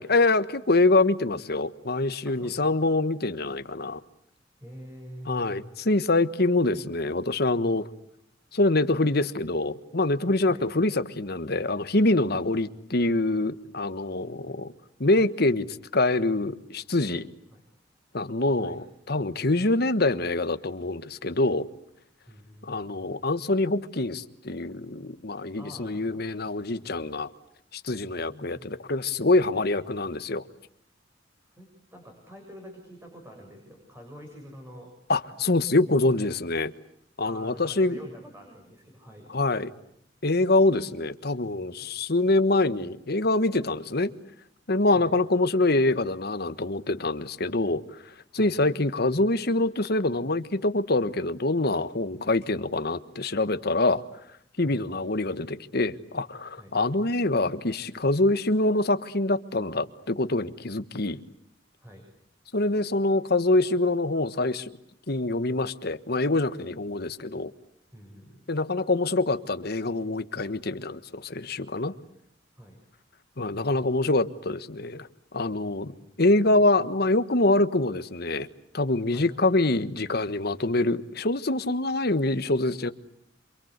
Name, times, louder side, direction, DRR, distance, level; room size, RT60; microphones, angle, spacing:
voice 1, 0.0-4.0 5.3-7.9 8.5-14.7 15.0-15.6 15.9-17.3 18.1-21.7 22.6-27.3 27.7-30.4 35.1-36.7 37.2-38.0 39.3-39.7 40.2-44.1 44.7-48.0 48.3-54.0 54.6-61.2 62.5-64.7 65.1-67.5 68.5-71.9 73.4-75.1 75.3-75.9 76.2-78.5 78.7-82.9, left 2 dB, 55° left, 1.4 m, -25 dB
voice 2, 2.3-2.7 4.6-5.8 10.4-10.7 17.5-17.6 18.6-18.8 22.3-23.1 25.6-26.4 28.2-28.8 31.5-34.9 35.8-35.9 37.2-39.3 41.8-41.9 44.9-45.2 48.3-48.6 54.6-54.9 56.5-56.8 61.8-62.1 67.9-68.5 72.6-72.8 75.8-76.2 79.1-79.3, equal, 15° right, 7.3 m, -47 dB
28.0 x 26.0 x 8.2 m
head